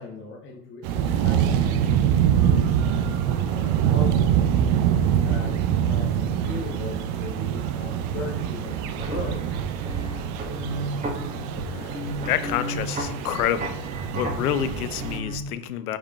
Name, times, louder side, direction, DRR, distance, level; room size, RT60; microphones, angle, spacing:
voice 1, 0.0-4.4 4.6-8.8 9.1-9.4, left 3 dB, 25° left, 0 dB, 0.9 m, -39 dB
sound 1, 0.8-15.2, right 9 dB, 45° right, 0.5 m, -25 dB
sound 2, 8.7-15.4, right 1 dB, 15° right, 1.2 m, -33 dB
voice 2, 11.7-13.9 14.1-16.0, left 10 dB, 80° left, 12 dB, 0.6 m, -28 dB
4.9 x 4.3 x 2.3 m, 0.72 s
hypercardioid pair, 90°, 44 cm